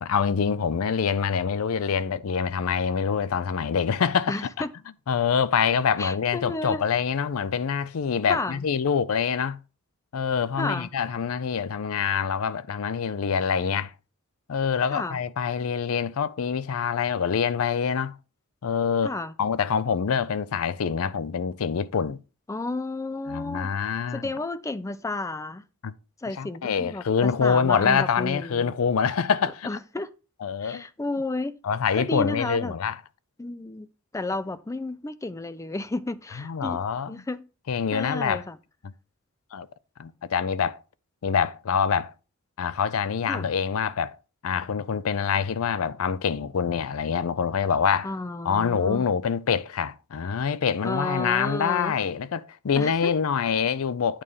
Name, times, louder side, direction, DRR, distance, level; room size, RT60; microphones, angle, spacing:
voice 1, 0.0-4.3 5.1-9.6 10.1-13.9 14.5-18.2 18.6-22.2 23.3-24.2 25.8-25.9 26.3-29.7 30.4-30.8 31.6-33.0 36.4-37.2 37.7-38.4 38.8-38.9 39.5-39.7 40.0-40.8 41.2-42.1 42.6-44.2 44.4-48.1 48.4-54.2, left 6 dB, 75° left, 0.5 m, -25 dB
voice 2, 4.3-4.7 6.0-6.8 8.3-8.6 10.6-10.9 14.9-15.2 19.0-19.3 22.5-23.7 24.1-25.6 26.2-28.7 29.6-30.1 30.6-31.6 31.9-32.8 33.4-33.9 34.1-36.8 37.1-37.4 37.9-38.6 43.3-43.5 48.0-49.1 50.8-52.1 52.8-53.1, left 2 dB, 15° left, 0.4 m, -32 dB
8.9 x 3.2 x 5.5 m
head